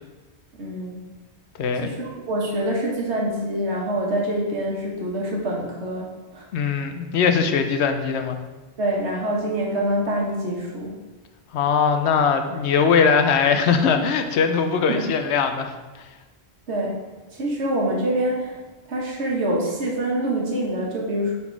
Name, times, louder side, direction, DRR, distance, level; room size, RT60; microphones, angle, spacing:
voice 1, 0.6-1.0 1.8-6.5 8.8-11.0 14.9-15.0 16.7-17.0 17.3-18.6 18.9-21.3, right 1 dB, 90° right, -2 dB, 1.5 m, -25 dB
voice 2, 1.6-1.9 6.5-8.4 11.5-16.1, left 6 dB, 85° left, 7 dB, 0.9 m, -21 dB
5.7 x 4.2 x 4.6 m, 1.2 s
omnidirectional pair, 1.1 m